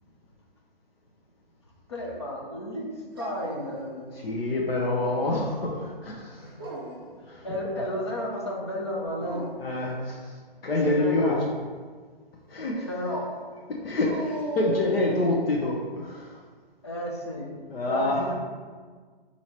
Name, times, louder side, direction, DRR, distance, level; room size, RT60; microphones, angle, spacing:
voice 1, 1.9-4.1 6.4-6.7 7.2-9.4 10.7-11.5 12.9-13.3 16.8-18.3, equal, 30° left, -1 dB, 0.6 m, -33 dB
Dog, 3.2-4.3 4.7-5.4 6.4-7.2 9.1-9.8 14.0-15.3, right 1 dB, 25° right, 0.5 m, -37 dB
voice 2, 4.2-6.4 7.3-7.5 9.6-10.4 10.6-11.3 12.5-12.9 13.8-16.4 17.7-18.3, left 2 dB, 85° left, -3 dB, 0.9 m, -27 dB
4.4 x 2.8 x 4.4 m, 1.5 s
hypercardioid pair, 175°, 29 cm